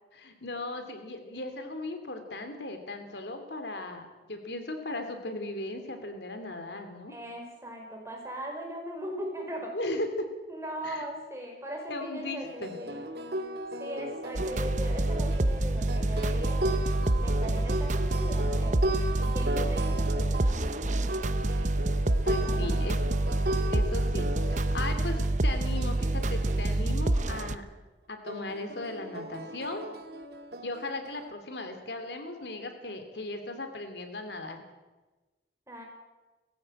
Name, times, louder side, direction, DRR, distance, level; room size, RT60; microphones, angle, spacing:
voice 1, 0.1-7.1 9.7-10.3 10.8-11.0 11.9-12.7 22.2-23.0 23.7-27.6 28.1-29.9 30.6-34.6, left 2 dB, 75° left, 7 dB, 2.8 m, -37 dB
voice 2, 7.1-9.7 10.5-13.0 13.8-16.9 17.2-21.2 22.4-22.8 35.7-35.8, equal, 15° right, 1 dB, 5.1 m, -39 dB
sound 1, 12.3-26.8 28.3-31.3, right 1 dB, 65° right, 1.9 m, -36 dB
sound 2, 14.4-27.6, right 2 dB, 40° right, 0.8 m, -27 dB
19.5 x 15.0 x 8.9 m, 1.2 s
head